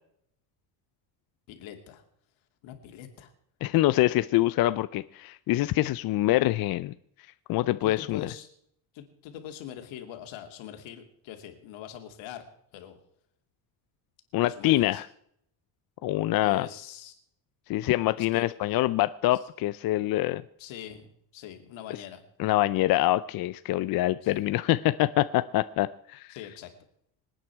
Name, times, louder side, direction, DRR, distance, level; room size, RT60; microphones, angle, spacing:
voice 1, 1.5-2.0 2.6-3.3 7.8-8.5 8.9-12.4 12.7-13.0 14.5-15.0 16.4-17.2 18.2-18.5 20.6-21.1 21.3-22.2 24.2-24.4 26.3-26.7, left 10 dB, 80° left, 5 dB, 2.7 m, -43 dB
voice 2, 3.6-6.9 7.5-8.3 14.3-15.1 16.0-16.7 17.7-20.4 22.4-26.3, left 16 dB, 50° left, 14 dB, 0.5 m, -25 dB
26.5 x 9.2 x 4.7 m, 0.71 s
cardioid pair, 150°, 46 cm